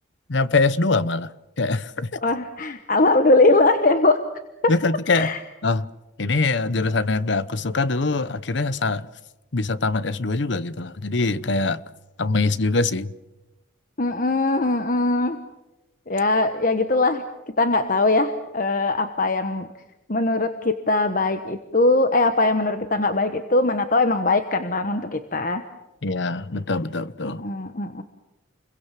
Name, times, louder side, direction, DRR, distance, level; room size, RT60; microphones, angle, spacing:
voice 1, 0.3-1.3 1.6-2.1 4.7-5.3 5.6-5.9 6.2-9.1 9.5-11.8 12.2-13.1 26.0-27.5, left 3 dB, 60° left, 0.9 m, -23 dB
voice 2, 2.2-4.2 5.1-5.4 14.0-15.4 16.1-17.2 17.6-19.7 20.1-25.6 27.2-28.0, left 2 dB, 40° left, 1.1 m, -21 dB
29.5 x 22.5 x 7.6 m
head